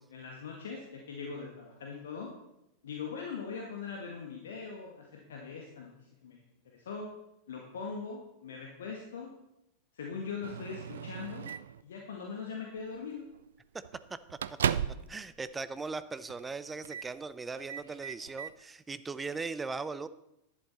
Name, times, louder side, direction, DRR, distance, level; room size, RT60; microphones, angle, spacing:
voice 1, 0.1-2.3 2.8-5.9 6.2-6.4 6.6-7.1 7.5-9.3 9.9-11.5 11.8-13.3, left 5 dB, 65° left, 0 dB, 1.7 m, -41 dB
Microwave oven, 10.4-11.8 12.8-13.0 13.3-13.5 13.8-15.2 15.5-15.6 16.3-16.5 16.8-17.1 17.5-18.5, right 8 dB, 65° right, 0.4 m, -36 dB
voice 2, 15.1-20.1, right 4 dB, 15° right, 14 dB, 0.6 m, -39 dB
11.0 x 10.5 x 4.1 m, 0.86 s
figure-of-eight pair, 90°, 0 cm